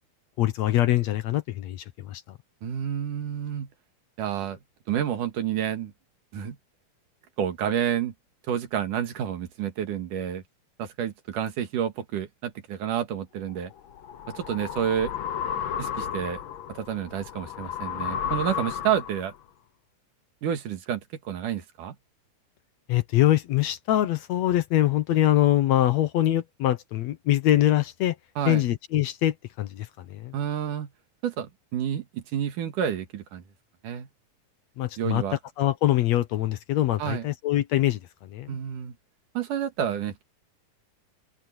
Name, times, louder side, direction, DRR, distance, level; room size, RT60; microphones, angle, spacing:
voice 1, 0.4-2.2 22.9-28.2 28.5-30.4 34.8-35.2 35.6-38.6, left 13 dB, 65° left, 2.0 m, -24 dB
voice 2, 2.6-3.7 4.2-4.6 4.9-5.9 6.3-6.6 7.4-8.1 8.5-10.4 10.8-13.7 14.4-15.1 15.8-16.4 16.7-19.3 20.4-22.0 28.4-28.6 30.3-30.9 31.2-33.4 33.8-34.1 35.0-35.4 37.0-37.3 38.5-38.9 39.4-40.2, right 9 dB, 80° right, 3.3 m, -29 dB
sound 1, 13.6-19.4, left 8 dB, 80° left, 1.1 m, -33 dB
open air
omnidirectional pair, 3.6 m